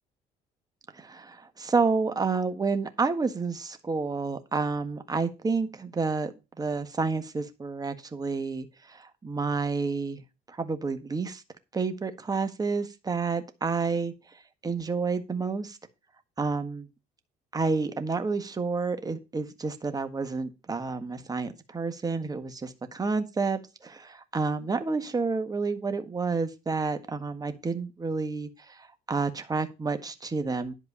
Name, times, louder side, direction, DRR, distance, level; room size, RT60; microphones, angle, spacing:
voice 1, 0.9-10.2 10.5-11.4 11.7-14.1 14.6-15.8 16.4-16.9 17.5-30.7, right 4 dB, 20° right, 9 dB, 1.6 m, -30 dB
11.0 x 4.7 x 6.9 m, 0.27 s
cardioid pair, 110°, 17 cm